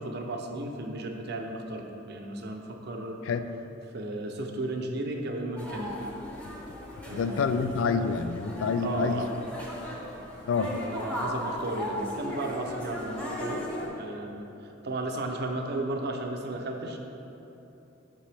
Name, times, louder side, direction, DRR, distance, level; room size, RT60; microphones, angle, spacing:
voice 1, 0.0-3.2 3.9-5.9 7.1-7.8 8.8-9.3 10.7-13.6 13.9-17.0, right 2 dB, 55° right, 3 dB, 0.6 m, -34 dB
sound 1, 5.6-13.9, left 1 dB, 5° left, 0.9 m, -37 dB
voice 2, 7.1-9.2 10.5-10.7, left 5 dB, 70° left, 10 dB, 0.3 m, -27 dB
7.4 x 6.3 x 3.4 m, 3.0 s
head